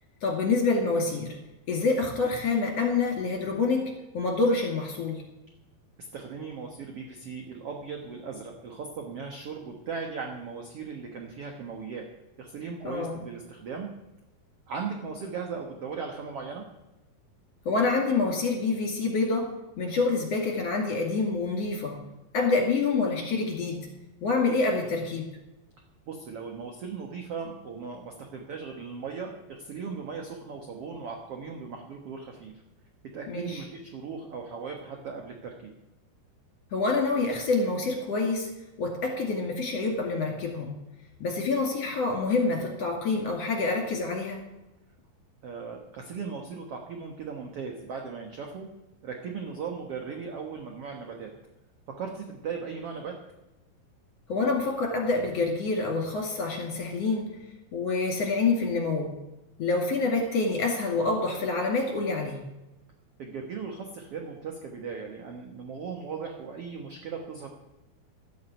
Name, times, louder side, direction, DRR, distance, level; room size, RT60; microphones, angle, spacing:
voice 1, 0.2-1.4 1.7-5.2 12.8-13.2 17.6-22.0 22.3-23.9 24.2-25.3 33.3-33.6 36.7-40.7 41.2-44.4 54.3-57.4 57.7-59.1 59.6-62.4, left 3 dB, 45° left, 0 dB, 3.0 m, -27 dB
voice 2, 6.1-12.1 12.4-13.9 14.7-16.7 26.1-32.5 33.1-35.7 45.4-48.7 49.0-51.3 52.0-53.1 63.2-67.5, right 5 dB, 60° right, 2 dB, 1.6 m, -38 dB
12.5 x 8.6 x 8.3 m, 0.99 s
omnidirectional pair, 4.5 m